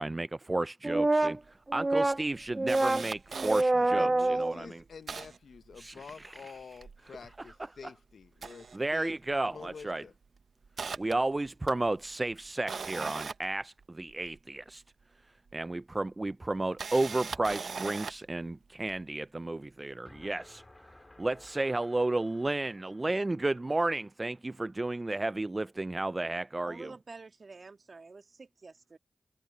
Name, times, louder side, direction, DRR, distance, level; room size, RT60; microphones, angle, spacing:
voice 1, 0.0-4.8 5.8-6.3 8.7-10.0 11.0-14.8 15.5-20.6 21.2-26.9, right 2 dB, 35° right, 0.3 m, -31 dB
Camera, 1.0-1.1 1.4-1.5 2.0-3.6 4.3-4.4 4.6-6.3 6.6-7.8 8.2-9.4 9.7-9.9 10.4-14.4 15.5-15.6 16.5-18.3 18.9-19.0, right 5 dB, 75° right, 0.7 m, -41 dB
voice 2, 4.0-9.2 9.5-10.1, left 6 dB, 80° left, 0.8 m, -48 dB
sound 1, 20.1-25.0, left 1 dB, 25° left, 1.9 m, -58 dB
voice 3, 26.6-29.0, right 4 dB, 60° right, 1.8 m, -49 dB
cardioid pair, 40°, 0 cm